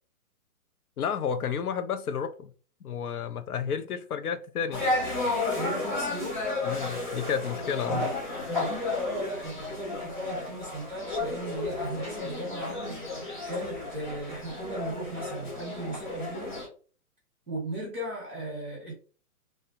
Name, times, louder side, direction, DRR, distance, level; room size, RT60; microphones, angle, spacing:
voice 1, 1.0-2.5 2.8-4.8 6.6-8.1, left 7 dB, 75° left, 10 dB, 0.6 m, -31 dB
sound 1, 4.7-16.7, left 2 dB, 35° left, 0.7 m, -33 dB
voice 2, 5.5-6.4 7.9-8.1 8.5-16.6 17.5-18.9, right 1 dB, 10° right, -10 dB, 0.6 m, -36 dB
3.2 x 2.5 x 2.8 m, 0.40 s
hypercardioid pair, 175°, 46 cm